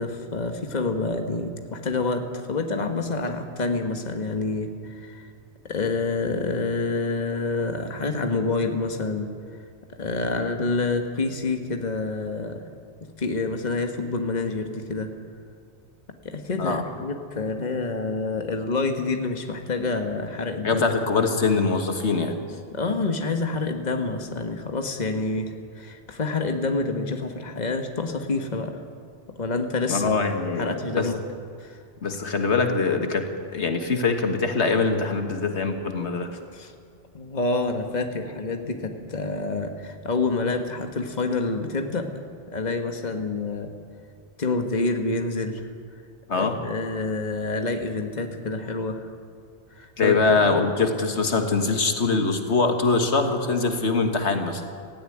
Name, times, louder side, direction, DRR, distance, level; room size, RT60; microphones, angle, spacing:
voice 1, 0.0-5.3 5.6-9.3 10.0-12.6 13.2-15.1 16.2-20.9 22.7-28.8 29.4-30.2 30.6-31.2 31.6-31.8 36.5-36.7 37.1-42.1 42.5-43.7 44.4-45.6 46.3-49.1 49.7-50.5, left 3 dB, 40° left, 5 dB, 1.6 m, -27 dB
voice 2, 20.6-22.4 29.9-31.1 32.0-33.2 33.5-36.3 46.3-46.6 50.0-54.6, left 4 dB, 80° left, 5 dB, 1.8 m, -23 dB
17.0 x 16.0 x 9.9 m, 2.2 s
omnidirectional pair, 1.1 m